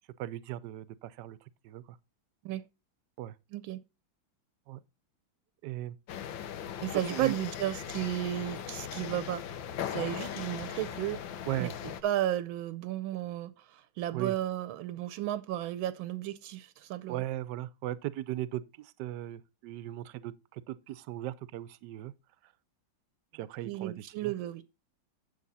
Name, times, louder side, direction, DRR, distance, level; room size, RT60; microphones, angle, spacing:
voice 1, 0.2-1.4 1.6-2.0 3.2-3.3 4.7-4.8 5.6-6.0 7.1-7.4 11.5-11.7 14.1-14.4 17.1-22.1 23.3-24.3, right 13 dB, 70° right, 1.1 m, -37 dB
sound 1, 6.1-12.0, left 9 dB, 75° left, 1.6 m, -39 dB
voice 2, 6.8-9.4 9.9-11.2 11.6-17.2 23.6-24.6, right 13 dB, 85° right, 1.5 m, -34 dB
9.3 x 7.2 x 4.1 m
omnidirectional pair, 2.2 m